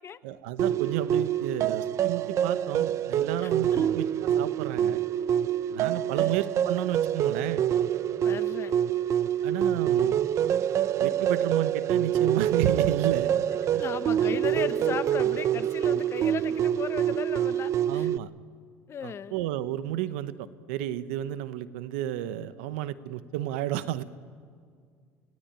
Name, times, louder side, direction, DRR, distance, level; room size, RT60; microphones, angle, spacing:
voice 1, 0.2-5.0 5.7-7.6 9.4-10.2 11.0-13.3 13.7-13.8 17.9-18.3 19.0-24.0, right 12 dB, 90° right, 14 dB, 1.0 m, -32 dB
sound 1, 0.6-18.2, right 10 dB, 50° right, 0.6 m, -26 dB
voice 2, 3.4-3.9 5.8-6.4 8.2-8.7 13.8-18.1 18.9-19.4, left 8 dB, 40° left, 14 dB, 1.0 m, -36 dB
30.0 x 17.0 x 9.1 m, 2.1 s
supercardioid pair, 90°, 6 cm